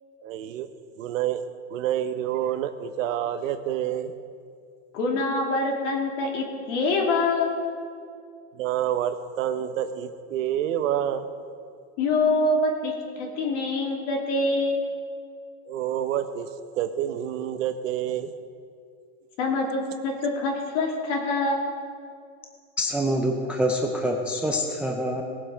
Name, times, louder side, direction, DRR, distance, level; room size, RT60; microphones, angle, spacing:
voice 1, 0.2-0.7 1.0-1.4 1.7-4.1 8.6-11.3 15.7-16.5 16.8-18.3, right 11 dB, 90° right, 10 dB, 1.0 m, -28 dB
voice 2, 4.9-7.6 12.0-14.8 19.4-21.7, left 2 dB, 65° left, 0 dB, 2.9 m, -25 dB
voice 3, 22.8-25.2, equal, 5° right, 2 dB, 0.3 m, -25 dB
18.5 x 7.4 x 5.1 m, 2.3 s
supercardioid pair, 145°, 38 cm